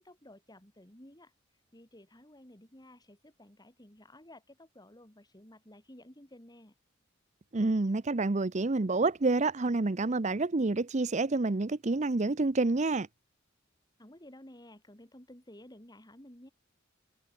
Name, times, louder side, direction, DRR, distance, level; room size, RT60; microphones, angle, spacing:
voice 1, 0.0-1.3 1.7-6.7 14.0-16.5, left 1 dB, 20° left, 3.3 m, -54 dB
voice 2, 7.5-13.1, right 3 dB, 35° right, 0.7 m, -28 dB
head